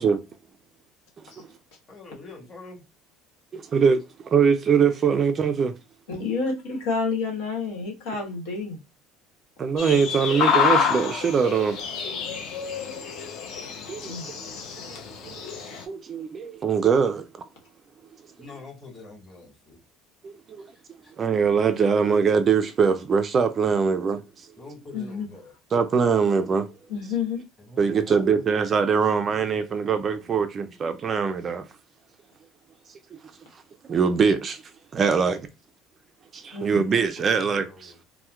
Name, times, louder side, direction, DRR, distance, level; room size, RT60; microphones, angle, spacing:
voice 1, 1.9-2.8 18.4-19.8 20.6-21.1 24.6-25.5 27.6-28.2 29.4-30.3 30.6-30.8 36.6-38.0, left 3 dB, 20° left, 1.4 m, -45 dB
voice 2, 3.5-5.7 9.6-11.8 13.9-14.1 14.9-15.4 15.9-17.2 20.2-20.7 21.2-24.5 25.7-26.7 27.8-31.7 33.1-33.2 33.9-34.6 34.9-35.5 36.3-37.9, right 6 dB, 25° right, 0.3 m, -22 dB
voice 3, 6.1-8.8 14.0-14.4 24.9-25.3 26.9-27.4 36.5-36.8, left 4 dB, 85° left, 1.2 m, -29 dB
sound 1, 9.8-15.8, left 6 dB, 55° left, 0.7 m, -27 dB
4.2 x 2.1 x 2.3 m
cardioid pair, 155°, 0 cm